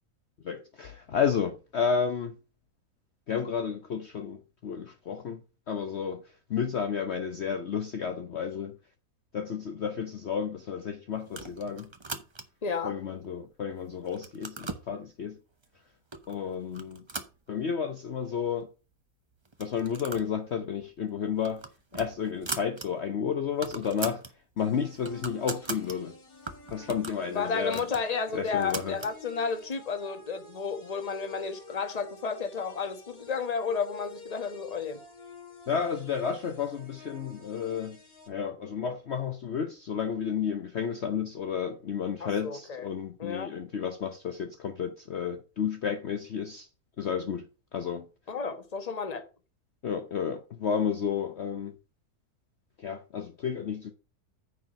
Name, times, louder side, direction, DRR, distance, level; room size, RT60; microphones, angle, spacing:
voice 1, 0.4-2.3 3.3-5.4 5.7-6.2 6.5-8.7 9.3-11.9 12.8-15.4 16.3-17.0 17.5-18.7 19.6-21.6 21.9-24.2 24.6-26.1 26.7-27.8 28.3-29.0 35.7-38.0 38.3-46.7 47.0-47.5 47.7-48.1 49.8-51.7 52.8-53.9, left 7 dB, 50° left, 1.0 m, -31 dB
sound 1, 11.3-12.7 13.2-13.7 14.0-14.9 15.6-15.7 16.1-16.4 16.7-18.0 18.3-18.4 18.6-18.7 19.5-20.3 20.6-20.8 21.2-22.9 23.2-23.3 23.5-24.3 24.7-26.0 26.5-29.2, right 3 dB, 25° right, 0.8 m, -40 dB
voice 2, 12.6-12.9 27.3-35.0 42.2-42.9 43.2-43.5 48.3-49.3, left 5 dB, 25° left, 1.2 m, -32 dB
sound 2, 24.6-38.3, left 4 dB, 75° left, 2.8 m, -49 dB
9.6 x 4.5 x 6.3 m
omnidirectional pair, 1.6 m